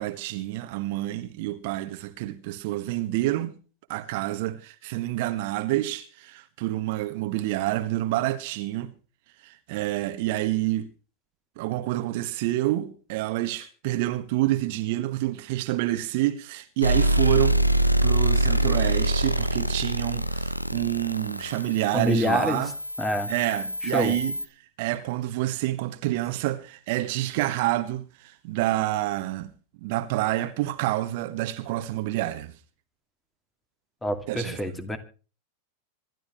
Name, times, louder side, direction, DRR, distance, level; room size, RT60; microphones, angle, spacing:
voice 1, 0.0-3.5 3.9-8.9 9.4-10.9 11.6-22.7 23.3-24.3 24.8-29.5 29.8-32.5 34.3-34.8, right 16 dB, 50° right, 1.4 m, -28 dB
sound 1, 16.8-24.4, right 1 dB, 90° left, 1.0 m, -25 dB
voice 2, 21.9-22.7 23.0-23.3 23.9-24.2 34.0-35.0, left 1 dB, 10° left, 2.2 m, -26 dB
26.0 x 12.5 x 3.1 m
figure-of-eight pair, 90°, 0 cm